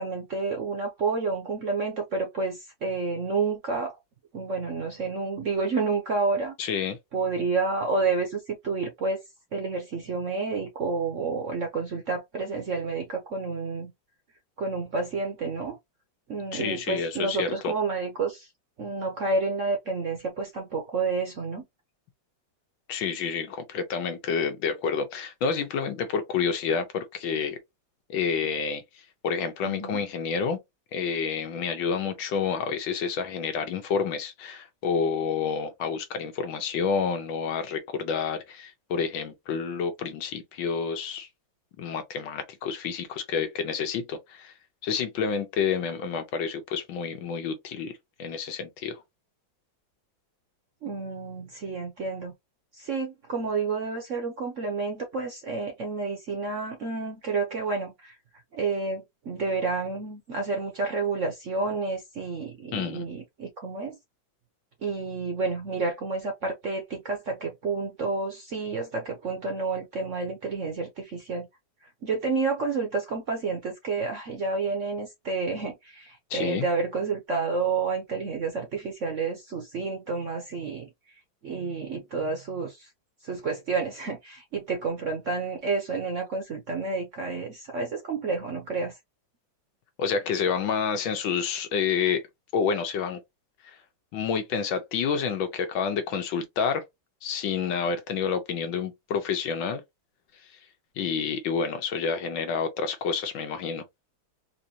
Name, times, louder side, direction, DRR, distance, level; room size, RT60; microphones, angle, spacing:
voice 1, 0.0-4.0 4.3-6.5 7.1-9.2 9.5-13.9 14.6-15.8 16.3-18.5 18.8-21.6 29.6-30.0 50.8-52.3 52.7-58.2 58.5-64.0 64.8-71.5 71.8-80.9 81.4-82.9 83.2-89.0, right 4 dB, 55° right, 0.9 m, -30 dB
voice 2, 6.6-7.0 16.5-17.7 22.9-27.6 28.1-30.6 30.9-41.3 41.8-44.5 44.8-47.9 48.2-49.0 62.7-63.1 76.3-76.7 90.0-92.3 92.5-93.2 93.6-93.8 94.1-96.8 97.2-99.8 101.0-103.8, left 6 dB, 75° left, 1.6 m, -29 dB
4.3 x 2.6 x 2.8 m
omnidirectional pair, 2.2 m